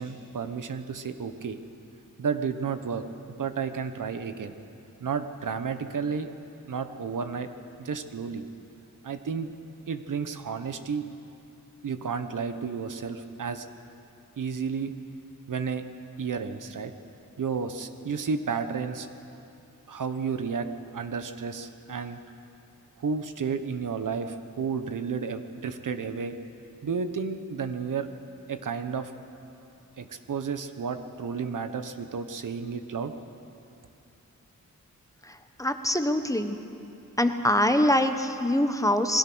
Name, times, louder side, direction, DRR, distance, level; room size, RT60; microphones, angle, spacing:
voice 1, 0.0-1.6 2.2-3.0 3.4-4.5 5.0-6.3 6.7-7.5 7.8-8.4 9.0-9.5 9.9-11.1 11.8-13.6 14.4-14.9 15.5-15.8 16.2-16.9 17.4-19.1 19.9-20.7 20.9-22.2 23.0-26.4 26.8-28.1 28.5-29.1 30.0-33.1, right 5 dB, 70° right, 9 dB, 1.3 m, -32 dB
voice 2, 35.6-36.6 37.2-39.2, left 1 dB, 10° left, 7 dB, 1.1 m, -24 dB
27.5 x 21.0 x 6.4 m, 2.7 s
wide cardioid pair, 130°, 33 cm